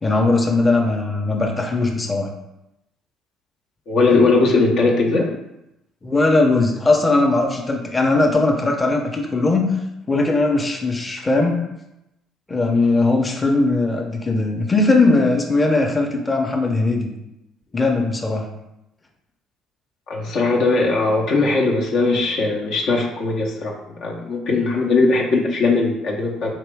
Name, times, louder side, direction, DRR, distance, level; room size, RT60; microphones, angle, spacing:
voice 1, 0.0-2.3 6.0-9.7 10.1-11.6 12.5-17.1 17.7-18.5, left 2 dB, 20° left, 2 dB, 0.7 m, -19 dB
voice 2, 3.9-5.3 20.1-26.5, left 3 dB, 65° left, -1 dB, 0.7 m, -19 dB
3.9 x 2.9 x 3.5 m, 0.90 s
hypercardioid pair, 60°, 0 cm